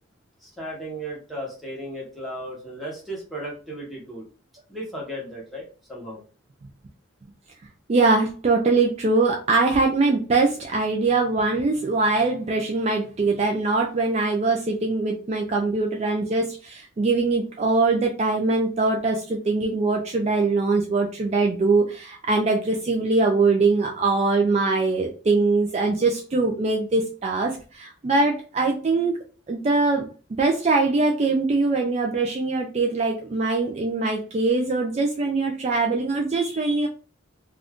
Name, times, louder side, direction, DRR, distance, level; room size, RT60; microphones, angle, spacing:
voice 1, 0.4-4.3 4.7-6.2, right 1 dB, ahead, -4 dB, 1.0 m, -35 dB
voice 2, 7.9-29.1 29.5-30.1 30.3-36.9, right 3 dB, 30° right, 1 dB, 0.3 m, -22 dB
2.5 x 2.3 x 3.4 m, 0.37 s
head